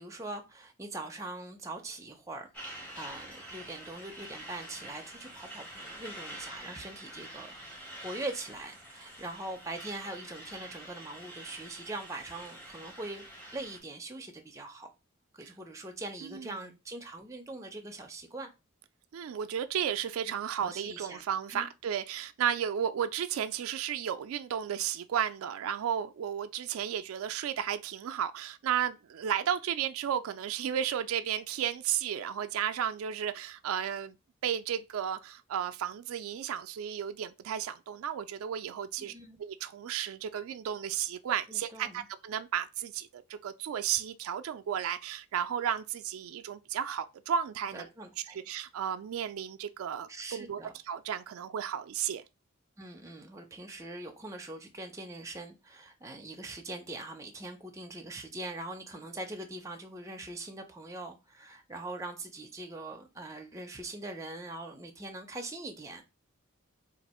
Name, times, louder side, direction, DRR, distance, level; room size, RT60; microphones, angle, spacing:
voice 1, 0.0-7.6 8.0-14.9 15.3-18.5 20.3-21.2 21.5-21.7 39.0-39.4 41.5-42.0 47.7-48.4 50.1-50.7 52.8-66.0, right 2 dB, 15° right, 0.5 m, -42 dB
Truck, 2.5-13.8, right 1 dB, 10° left, 0.8 m, -46 dB
voice 2, 16.2-16.7 19.1-34.2 34.4-39.1 39.4-47.9 48.3-52.2, right 9 dB, 85° right, 0.3 m, -33 dB
2.6 x 2.5 x 4.2 m
head